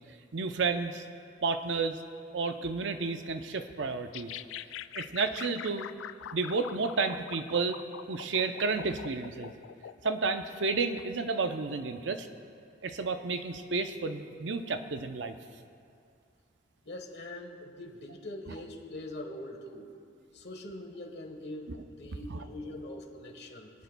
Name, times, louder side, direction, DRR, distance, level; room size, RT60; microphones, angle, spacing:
voice 1, 0.3-1.0 1.4-2.0 2.3-4.3 4.9-5.9 6.3-7.8 8.1-9.5 10.0-12.3 12.8-15.4 22.3-22.4, right 4 dB, 70° right, 8 dB, 0.6 m, -31 dB
sound 1, 4.1-10.4, left 9 dB, 80° left, 0.3 m, -43 dB
voice 2, 16.8-19.9 20.3-23.7, left 1 dB, 60° left, 2 dB, 1.3 m, -43 dB
28.5 x 9.5 x 2.3 m, 2.4 s
head